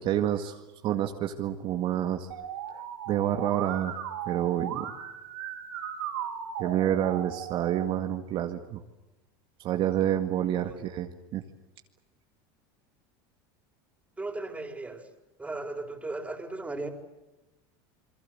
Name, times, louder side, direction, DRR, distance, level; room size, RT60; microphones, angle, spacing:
voice 1, 0.0-2.3 2.7-2.8 3.1-4.9 6.6-8.8 9.6-11.4, right 11 dB, 45° right, 4 dB, 2.0 m, -28 dB
Musical instrument, 2.3-7.9, right 9 dB, 90° right, 6.4 m, -37 dB
voice 2, 14.2-15.1 15.4-16.9, right 2 dB, 10° right, 6 dB, 4.7 m, -36 dB
28.5 x 23.0 x 7.9 m, 1.0 s
supercardioid pair, 115°, 12 cm